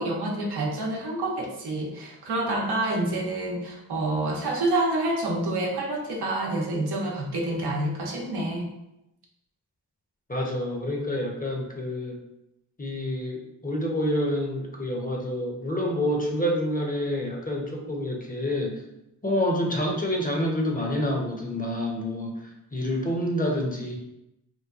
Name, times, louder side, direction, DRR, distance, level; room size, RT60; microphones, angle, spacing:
voice 1, 0.0-8.7, right 2 dB, 70° right, -1 dB, 0.9 m, -28 dB
voice 2, 10.3-12.2 12.8-18.8 19.2-22.4 22.7-24.0, left 1 dB, 20° left, -1 dB, 0.9 m, -28 dB
3.1 x 2.2 x 3.6 m, 0.87 s
supercardioid pair, 45°, 40 cm